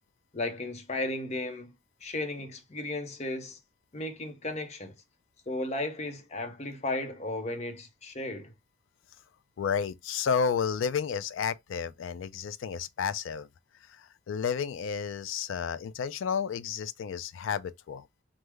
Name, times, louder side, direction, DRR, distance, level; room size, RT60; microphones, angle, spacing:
voice 1, 0.3-1.7 2.0-3.6 3.9-4.9 5.5-8.5, left 2 dB, 35° left, 0.6 m, -35 dB
voice 2, 9.6-13.5 13.8-18.1, left 6 dB, 75° left, 0.3 m, -31 dB
3.4 x 2.0 x 3.0 m
head